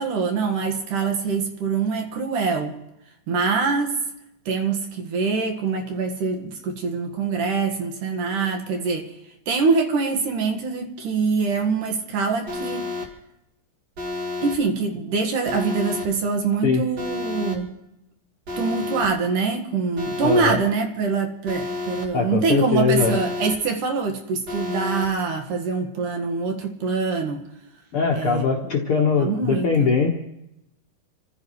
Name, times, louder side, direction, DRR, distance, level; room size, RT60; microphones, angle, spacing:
voice 1, 0.0-2.8 3.3-4.0 4.5-9.1 9.5-12.9 14.4-17.7 18.6-27.4 28.1-28.4 29.1-29.9, right 4 dB, 65° right, 3 dB, 3.0 m, -24 dB
Alarm, 12.5-13.1 14.0-14.6 15.5-16.1 17.0-17.6 18.5-19.1 20.0-20.6 21.5-22.1 23.0-23.6 24.5-25.1, left 3 dB, 50° right, 3.2 m, -30 dB
voice 2, 20.2-20.6 22.1-23.2 27.9-30.1, left 5 dB, 55° left, -1 dB, 1.6 m, -21 dB
29.0 x 15.5 x 3.2 m, 0.86 s
omnidirectional pair, 4.2 m